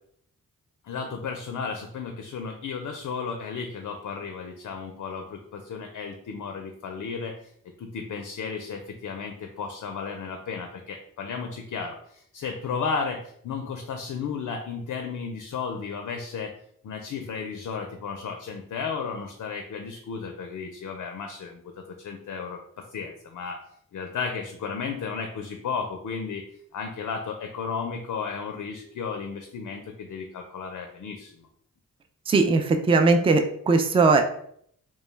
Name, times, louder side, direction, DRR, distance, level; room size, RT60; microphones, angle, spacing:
voice 1, 0.8-7.5 7.8-16.6 16.8-22.6 22.9-23.6 23.9-26.4 26.7-31.5, left 5 dB, 55° left, 4 dB, 0.4 m, -34 dB
voice 2, 32.3-34.2, right 3 dB, 15° right, 6 dB, 0.3 m, -19 dB
2.2 x 2.1 x 3.1 m, 0.67 s
cardioid pair, 45°, 35 cm